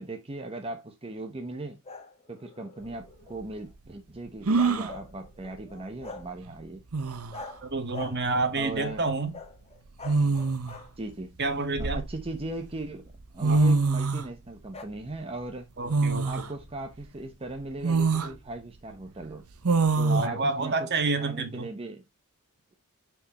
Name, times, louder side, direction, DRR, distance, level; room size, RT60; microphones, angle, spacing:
voice 1, 0.0-1.8 2.3-6.8 8.5-9.1 11.0-11.4 11.8-15.7 16.2-19.4 20.0-20.9 21.2-22.0, right 2 dB, 25° right, 0.9 m, -38 dB
sound 1, 1.8-3.7 4.6-6.3 7.3-7.6 7.9-8.3 8.7-9.1 9.3-10.9 14.7-14.8, left 3 dB, 30° left, 1.5 m, -44 dB
sound 2, 2.9-3.0 4.5-4.9 6.5-6.6 6.9-7.4 8.7-8.9 10.0-10.8 11.4-12.5 13.1-13.2 13.4-14.3 15.9-16.5 17.0-17.1 17.8-18.3 19.6-20.3, right 3 dB, 75° right, 0.9 m, -24 dB
voice 2, 7.7-9.3 11.4-12.0 13.5-13.6 15.8-16.3 20.1-21.7, right 3 dB, 50° right, 1.5 m, -28 dB
9.6 x 4.7 x 3.0 m
head